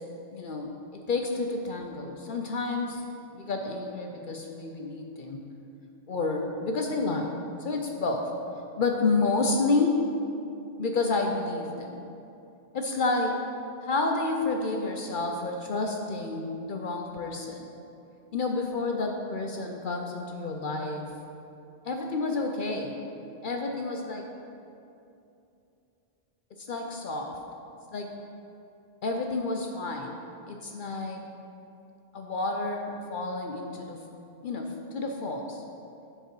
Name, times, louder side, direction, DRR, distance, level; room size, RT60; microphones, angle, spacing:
voice 1, 0.3-3.0 3.3-5.5 6.1-8.3 8.8-10.0 10.8-12.0 12.7-13.4 13.8-17.6 18.3-21.2 21.8-23.0 23.4-24.3 26.6-27.4 27.9-28.1 29.0-31.2 32.1-34.0 34.4-35.6, left 3 dB, 55° left, 2 dB, 0.7 m, -30 dB
9.6 x 4.7 x 4.7 m, 2.7 s
omnidirectional pair, 1.1 m